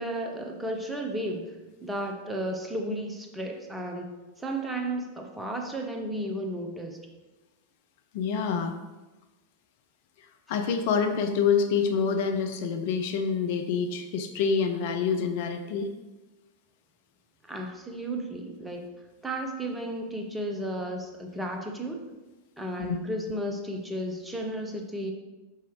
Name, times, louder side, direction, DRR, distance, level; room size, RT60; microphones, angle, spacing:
voice 1, 0.0-1.5 1.8-4.1 4.4-7.0 17.5-18.8 19.2-22.0 22.6-25.1, right 1 dB, 10° right, 2 dB, 0.8 m, -33 dB
voice 2, 8.1-8.7 10.2-15.9 22.9-23.0, left 6 dB, 50° left, 6 dB, 0.5 m, -27 dB
5.7 x 5.6 x 3.1 m, 1.1 s
figure-of-eight pair, 90°, 0 cm